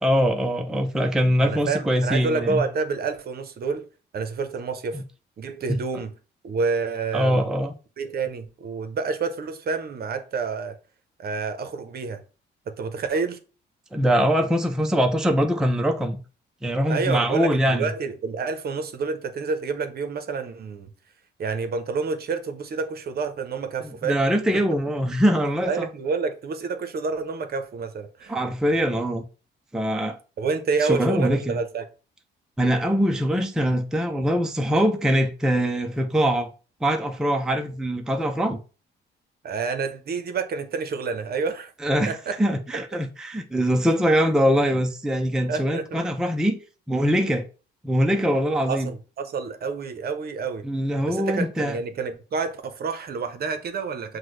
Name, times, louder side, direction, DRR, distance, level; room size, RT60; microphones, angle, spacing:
voice 1, 0.0-2.7 4.9-5.0 7.1-7.7 13.9-16.2 16.6-17.9 23.8-25.9 28.3-29.2 29.7-30.2 30.8-31.6 32.6-36.5 36.8-38.6 41.8-46.6 46.9-47.5 47.8-48.9 50.6-51.8, equal, 5° right, 0.4 m, -23 dB
voice 2, 1.4-3.8 4.1-5.0 5.4-6.1 6.4-7.5 8.0-10.8 11.2-12.2 12.7-13.4 16.9-20.9 21.4-24.2 25.6-28.3 30.4-31.8 39.4-41.7 42.1-42.4 45.5-46.0 48.7-50.6 51.1-54.2, right 4 dB, 50° right, 0.7 m, -28 dB
6.0 x 2.2 x 3.2 m
cardioid pair, 90°, 20 cm